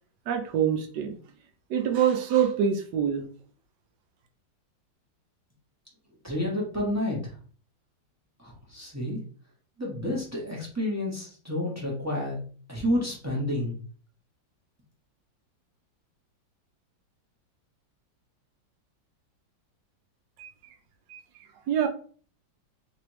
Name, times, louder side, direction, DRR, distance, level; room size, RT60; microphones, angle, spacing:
voice 1, 0.3-1.2 1.7-3.2 20.4-20.5 21.1-21.2 21.7-21.9, right 8 dB, 70° right, 5 dB, 1.2 m, -25 dB
voice 2, 6.2-7.3 8.4-9.2 9.8-12.4 12.7-13.8, left 1 dB, 10° right, -4 dB, 0.9 m, -30 dB
3.3 x 3.1 x 3.0 m, 0.43 s
omnidirectional pair, 2.0 m